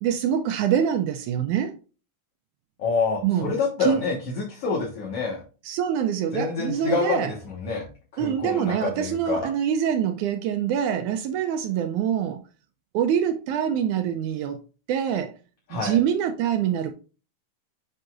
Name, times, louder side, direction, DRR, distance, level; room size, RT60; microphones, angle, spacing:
voice 1, 0.0-1.7 3.2-3.5 3.8-4.0 5.6-7.3 8.2-12.4 12.9-14.6 14.9-15.3 15.7-16.9, right 9 dB, 85° right, 1.8 m, -25 dB
voice 2, 2.8-5.4 6.3-7.9 8.1-9.5 15.7-16.0, left 4 dB, 55° left, 1.9 m, -27 dB
7.9 x 5.5 x 2.4 m
omnidirectional pair, 4.0 m